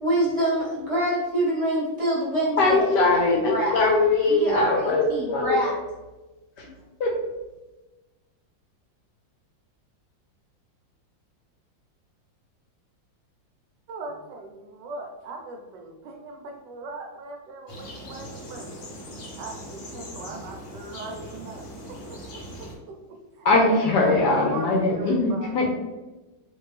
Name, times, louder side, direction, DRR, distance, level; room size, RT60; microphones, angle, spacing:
voice 1, 0.0-3.8 4.3-5.7 6.6-6.7, right 1 dB, 20° right, -7 dB, 1.0 m, -26 dB
voice 2, 2.6-5.6 6.6-6.7 7.0-7.1 23.4-25.7, left 3 dB, 70° left, 1 dB, 1.2 m, -21 dB
voice 3, 13.9-18.7 19.3-25.6, right 3 dB, 75° right, 2 dB, 1.2 m, -39 dB
sound 1, 17.7-22.7, equal, 55° left, 0.9 m, -40 dB
4.4 x 2.6 x 3.2 m, 1.1 s
omnidirectional pair, 2.1 m